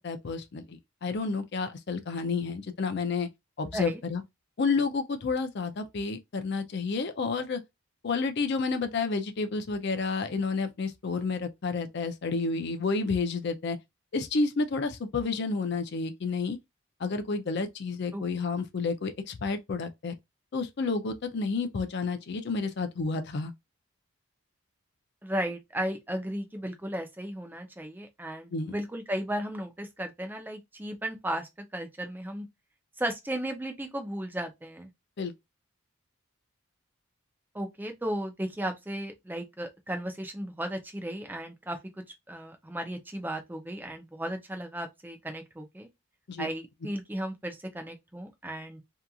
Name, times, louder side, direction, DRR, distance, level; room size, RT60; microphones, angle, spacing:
voice 1, 0.0-3.3 3.6-4.2 4.6-7.6 8.0-13.8 14.1-16.6 17.0-20.1 20.5-23.5 28.5-28.7 35.2-35.3 46.3-46.5, left 4 dB, 50° left, 0.4 m, -30 dB
voice 2, 25.2-32.5 33.0-34.9 37.5-41.8 42.3-45.9 46.4-48.8, right 1 dB, 10° right, 0.4 m, -35 dB
2.8 x 2.4 x 2.3 m
head